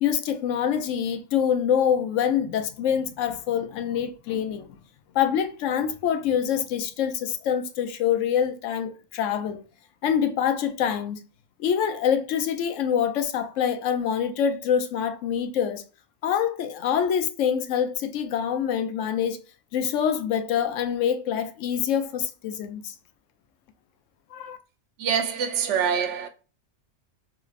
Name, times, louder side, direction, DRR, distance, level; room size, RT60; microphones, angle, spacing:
voice 1, 0.0-4.8 5.1-9.6 10.0-11.2 11.6-15.8 16.2-19.4 19.7-22.9 24.3-24.6, left 8 dB, 85° left, 0.9 m, -25 dB
voice 2, 25.0-26.3, right 7 dB, 70° right, 0.9 m, -25 dB
3.3 x 3.1 x 2.3 m
omnidirectional pair, 1.3 m